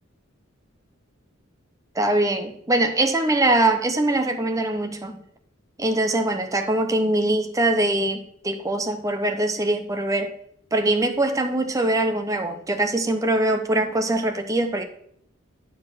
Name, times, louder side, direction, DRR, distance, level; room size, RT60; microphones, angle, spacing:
voice 1, 2.0-5.2 5.8-10.3 10.7-14.8, right 2 dB, 15° right, 0.7 m, -22 dB
9.7 x 4.3 x 5.8 m
head